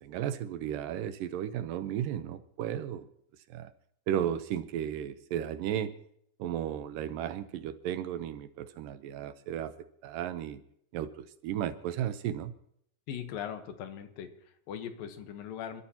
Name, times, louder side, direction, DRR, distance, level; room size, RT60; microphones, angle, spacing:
voice 1, 0.0-3.1 3.5-3.7 4.1-5.9 6.4-9.7 10.0-10.6 10.9-12.5, right 10 dB, 80° right, 11 dB, 2.4 m, -34 dB
voice 2, 13.1-15.8, left 9 dB, 80° left, 7 dB, 2.9 m, -40 dB
28.5 x 13.0 x 2.9 m, 0.70 s
omnidirectional pair, 4.0 m